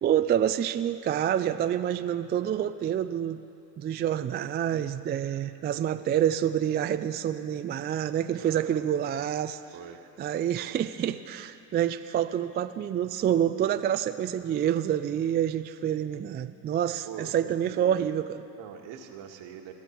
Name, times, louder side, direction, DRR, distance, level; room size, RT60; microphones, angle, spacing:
voice 1, 0.0-3.4 3.8-9.6 10.2-18.4, right 10 dB, 25° right, 10 dB, 0.3 m, -27 dB
voice 2, 8.4-8.8 9.7-10.0 17.0-18.1 18.5-19.7, right 9 dB, 65° right, 3 dB, 1.8 m, -43 dB
21.0 x 13.5 x 4.5 m, 2.7 s
supercardioid pair, 90°, 48 cm